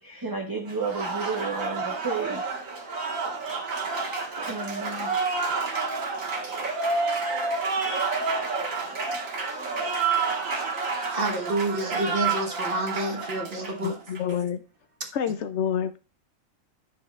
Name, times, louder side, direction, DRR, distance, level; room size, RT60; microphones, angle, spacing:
voice 1, 0.0-2.5 4.4-5.2, right 4 dB, 25° right, 0.5 m, -32 dB
Applause, 0.7-14.3, right 4 dB, 80° right, 2.0 m, -29 dB
voice 2, 11.1-13.9, right 1 dB, 45° right, 1.4 m, -28 dB
voice 3, 13.8-14.6 15.1-16.0, left 8 dB, 65° left, 0.8 m, -28 dB
10.5 x 6.4 x 2.4 m
omnidirectional pair, 1.4 m